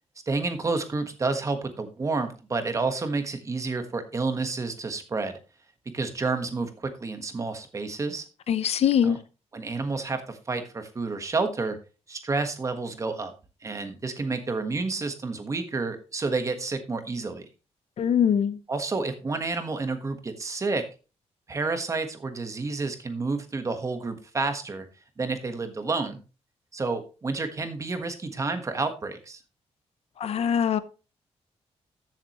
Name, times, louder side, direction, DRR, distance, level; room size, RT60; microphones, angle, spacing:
voice 1, 0.3-5.3 5.9-8.2 9.0-9.2 9.5-11.8 12.1-13.3 13.6-17.5 18.7-20.8 21.5-24.9 25.2-26.2 26.7-29.4, right 3 dB, 30° right, 1.4 m, -30 dB
voice 2, 8.5-9.2 18.0-18.6 30.2-30.8, left 8 dB, 65° left, 0.7 m, -22 dB
14.0 x 7.4 x 3.1 m
wide cardioid pair, 170°, 11 cm